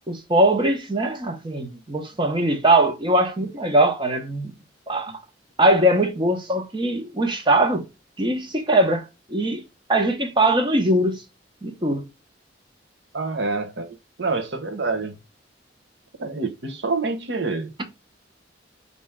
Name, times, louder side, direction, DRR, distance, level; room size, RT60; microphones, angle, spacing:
voice 1, 0.1-4.5 4.9-5.1 5.6-7.9 8.2-9.6 9.9-11.2 11.6-12.1, right 1 dB, 25° right, 0.9 m, -21 dB
voice 2, 13.1-15.2 16.2-17.7, right 3 dB, 65° right, 0.9 m, -27 dB
4.2 x 2.7 x 3.5 m
head